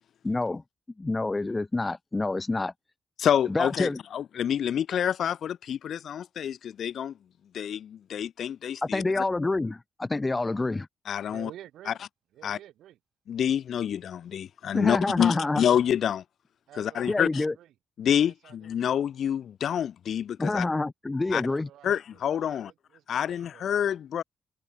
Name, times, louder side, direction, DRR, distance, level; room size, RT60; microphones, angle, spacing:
voice 1, 0.2-0.6 1.0-2.7 3.5-4.0 8.8-10.9 14.7-15.6 17.1-17.5 20.4-21.7, left 2 dB, 25° left, 1.6 m, -27 dB
voice 2, 3.2-7.1 7.5-9.2 11.1-11.5 11.9-12.0 12.4-12.6 13.3-16.2 16.8-17.4 18.0-20.7 21.3-21.4 21.8-22.7 23.1-24.2, left 9 dB, 65° left, 0.7 m, -27 dB
voice 3, 11.3-12.0 12.3-13.0 15.1-15.6 16.7-17.7 18.2-18.8 20.5-20.7 21.4-23.9, right 12 dB, 70° right, 6.2 m, -50 dB
hypercardioid pair, 40°, 0 cm